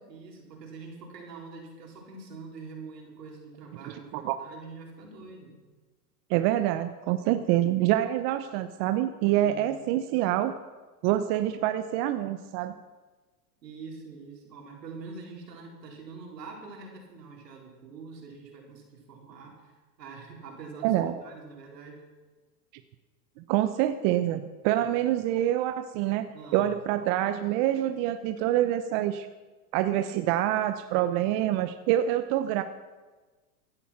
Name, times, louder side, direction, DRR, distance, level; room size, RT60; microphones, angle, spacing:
voice 1, 0.1-5.6 9.4-9.7 13.6-19.7 20.0-22.0 24.7-24.9 26.3-26.7, right 4 dB, 85° right, 0 dB, 4.5 m, -45 dB
voice 2, 3.8-4.3 6.3-10.5 11.0-12.7 20.8-21.2 23.5-29.3 29.7-32.6, right 13 dB, 45° right, 10 dB, 0.9 m, -26 dB
16.5 x 11.0 x 5.9 m, 1.3 s
hypercardioid pair, 115°, 48 cm